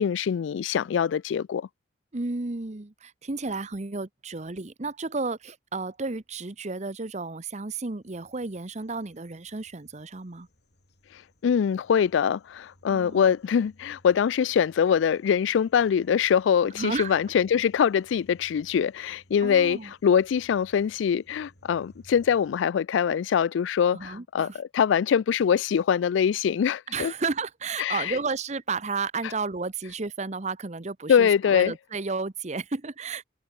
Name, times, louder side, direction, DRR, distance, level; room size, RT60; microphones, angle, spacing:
voice 1, 0.0-1.7 11.4-27.1 27.8-28.2 31.1-31.7, left 7 dB, 85° left, 0.3 m, -23 dB
voice 2, 2.1-10.5 12.9-13.2 16.7-17.2 19.4-19.9 23.9-24.6 26.9-33.2, right 4 dB, 40° right, 0.9 m, -32 dB
sound 1, 8.0-22.7, equal, 60° left, 7.7 m, -60 dB
head